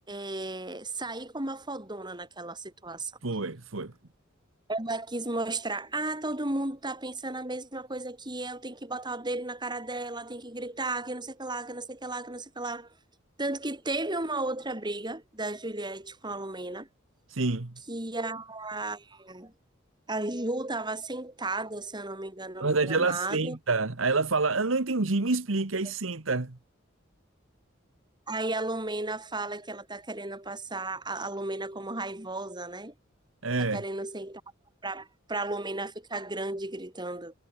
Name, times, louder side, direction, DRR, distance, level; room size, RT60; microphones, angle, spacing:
voice 1, 0.1-3.1 4.7-12.9 13.4-16.9 17.9-19.5 20.1-23.6 28.3-32.9 33.6-34.4 34.8-37.3, right 2 dB, 20° right, 6.2 m, -34 dB
voice 2, 3.2-3.9 17.3-17.7 22.6-26.6 33.4-33.8, right 3 dB, 75° right, 1.4 m, -27 dB
head